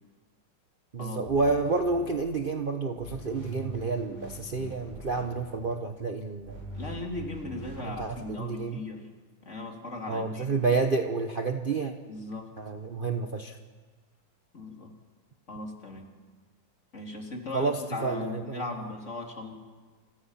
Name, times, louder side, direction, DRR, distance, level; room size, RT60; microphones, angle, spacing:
voice 1, 0.9-6.6 7.9-8.8 10.1-11.9 12.6-13.6 17.5-18.7, right 3 dB, 35° right, 5 dB, 1.1 m, -29 dB
sound 1, 1.3-2.7 3.0-5.8 6.4-8.1, right 2 dB, 10° left, 7.7 m, -43 dB
voice 2, 6.7-9.1 9.4-10.5 12.1-12.5 14.5-14.9 15.5-16.1 16.9-19.5, left 2 dB, 40° left, 1 dB, 3.5 m, -38 dB
30.0 x 26.0 x 5.8 m, 1.4 s
omnidirectional pair, 2.0 m